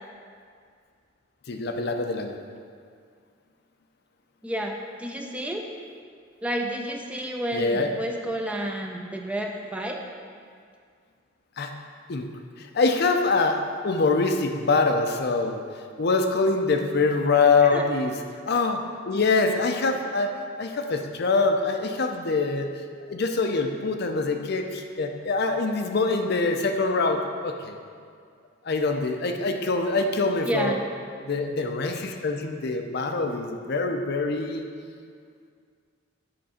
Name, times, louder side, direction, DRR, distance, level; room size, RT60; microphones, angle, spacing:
voice 1, 1.5-2.4 7.5-8.0 11.6-11.7 12.1-12.3 12.6-15.6 16.0-22.7 23.1-27.8 28.6-30.8 31.2-34.7, left 3 dB, 55° left, 5 dB, 0.5 m, -24 dB
voice 2, 4.4-5.6 6.4-10.0 17.6-17.8 30.5-30.8, right 1 dB, 5° right, 2 dB, 0.4 m, -30 dB
7.7 x 3.8 x 5.7 m, 2.1 s
head